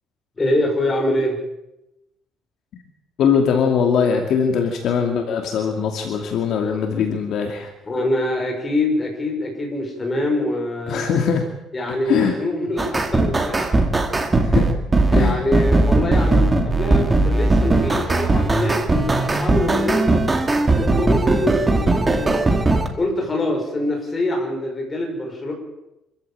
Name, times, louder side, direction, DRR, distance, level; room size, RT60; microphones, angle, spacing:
voice 1, 0.4-1.4 7.9-11.1 11.7-13.8 15.1-20.2 20.8-22.6 23.0-25.5, left 1 dB, 15° left, 1 dB, 5.9 m, -24 dB
voice 2, 3.2-7.7 10.9-11.5 12.1-12.3 14.4-14.7 15.1-15.4, left 6 dB, 50° left, 3 dB, 2.5 m, -21 dB
sound 1, 12.8-22.9, right 2 dB, 15° right, 2.0 m, -18 dB
25.5 x 14.5 x 9.0 m, 0.93 s
cardioid pair, 175°, 0 cm